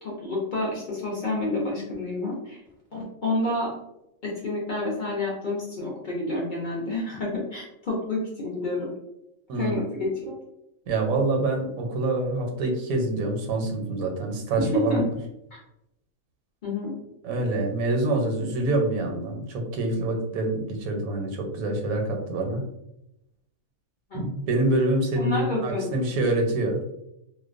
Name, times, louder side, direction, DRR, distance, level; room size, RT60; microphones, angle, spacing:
voice 1, 0.0-2.6 2.9-3.7 4.2-8.9 9.6-10.4 14.6-15.0 16.6-16.9 24.1-24.2 25.2-26.0, left 2 dB, 60° left, -4 dB, 0.5 m, -29 dB
voice 2, 10.9-15.0 17.2-22.6 24.1-26.8, right 2 dB, 80° right, 3 dB, 1.0 m, -26 dB
2.4 x 2.1 x 2.4 m, 0.84 s
omnidirectional pair, 1.5 m